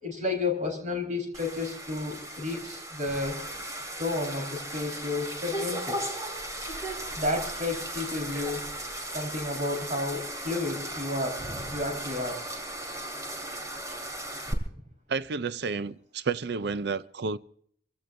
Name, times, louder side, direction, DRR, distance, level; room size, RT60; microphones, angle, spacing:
voice 1, 0.0-3.4 4.0-6.0 7.2-8.7 9.1-11.4 11.7-12.5, left 2 dB, 40° right, 4.2 m, -31 dB
sound 1, 1.3-14.5, right 1 dB, 20° right, 2.6 m, -36 dB
voice 2, 15.1-17.4, right 4 dB, 60° right, 0.5 m, -31 dB
26.5 x 16.0 x 2.6 m
head